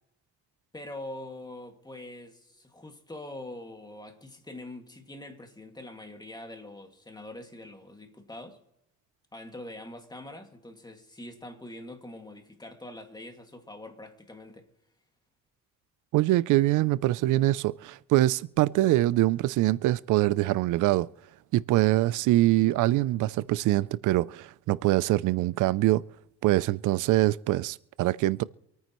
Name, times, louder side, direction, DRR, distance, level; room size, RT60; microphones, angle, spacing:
voice 1, 0.7-8.6 9.3-14.7, left 1 dB, 15° left, 2.1 m, -44 dB
voice 2, 16.1-21.1 21.5-26.0 26.4-28.4, right 16 dB, 85° right, 0.5 m, -24 dB
26.5 x 9.4 x 3.0 m
cardioid pair, 90°, 30 cm